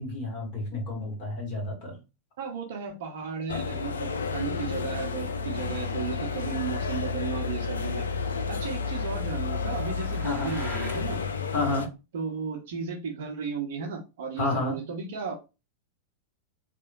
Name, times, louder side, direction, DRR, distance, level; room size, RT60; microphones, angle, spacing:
voice 1, 0.0-2.0 10.2-10.5 11.5-11.9 14.4-14.8, left 3 dB, 45° left, -1 dB, 1.6 m, -30 dB
voice 2, 2.4-11.2 12.1-15.3, right 6 dB, 55° right, 1 dB, 0.7 m, -35 dB
sound 1, 3.5-11.9, left 5 dB, 70° left, 0.3 m, -31 dB
sound 2, 8.9-11.1, right 1 dB, 5° right, 1.0 m, -43 dB
2.9 x 2.1 x 2.5 m, 0.28 s
figure-of-eight pair, 90°, 0 cm